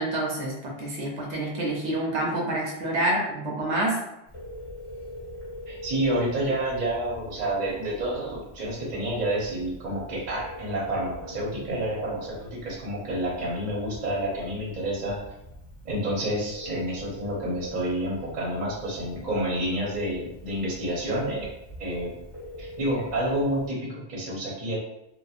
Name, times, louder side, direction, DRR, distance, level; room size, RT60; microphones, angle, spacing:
voice 1, 0.0-4.0, right 1 dB, 90° right, -2 dB, 1.0 m, -27 dB
Telephone, 4.3-23.7, left 1 dB, 30° left, 1.1 m, -44 dB
voice 2, 5.7-15.2 15.8-21.5 21.8-22.1 22.6-24.8, right 1 dB, 45° right, -4 dB, 0.8 m, -29 dB
2.8 x 2.1 x 2.4 m, 0.88 s
omnidirectional pair, 1.1 m